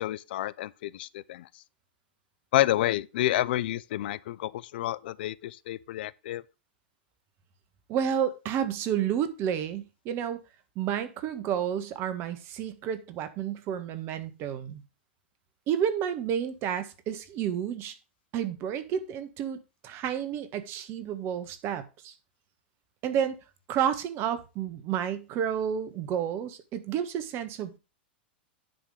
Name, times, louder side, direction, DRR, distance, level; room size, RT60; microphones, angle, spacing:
voice 1, 0.0-1.5 2.5-6.4, left 14 dB, 65° left, 0.5 m, -29 dB
voice 2, 7.9-10.4 10.7-14.8 15.7-17.9 18.3-22.1 23.0-23.4 23.7-27.8, right 9 dB, 45° right, 1.5 m, -30 dB
10.5 x 3.7 x 6.3 m
hypercardioid pair, 110°, 6 cm